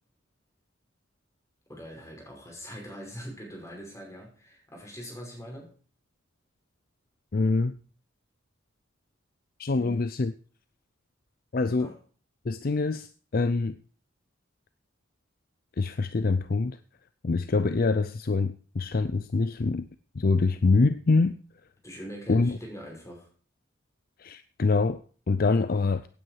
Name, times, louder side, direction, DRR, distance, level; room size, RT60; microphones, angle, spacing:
voice 1, 1.7-5.7 9.7-10.1 11.8-11.9 21.8-23.3, equal, 15° left, 5.5 m, -42 dB
voice 2, 7.3-7.8 9.6-10.3 11.5-11.9 12.4-13.8 15.8-16.8 17.2-19.9 20.1-21.4 22.3-22.6 24.2-26.1, left 3 dB, 50° left, 0.5 m, -25 dB
16.5 x 9.3 x 4.8 m
head